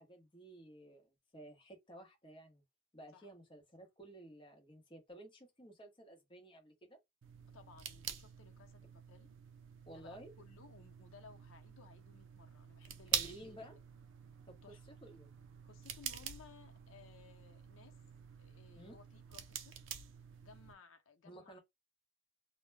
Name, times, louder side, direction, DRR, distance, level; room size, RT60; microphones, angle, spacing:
voice 1, 0.0-2.6 2.9-7.0 9.9-10.3 13.1-13.8 14.5-14.8 15.0-15.3 18.8-19.0 21.2-21.6, right 1 dB, 25° left, 0.9 m, -54 dB
sound 1, 7.2-20.7, right 9 dB, 65° right, 0.4 m, -46 dB
voice 2, 7.5-9.3 9.9-13.3 14.6-14.8 15.6-17.9 18.4-19.8 20.4-21.6, left 5 dB, 90° left, 0.6 m, -60 dB
2.1 x 2.1 x 3.2 m
head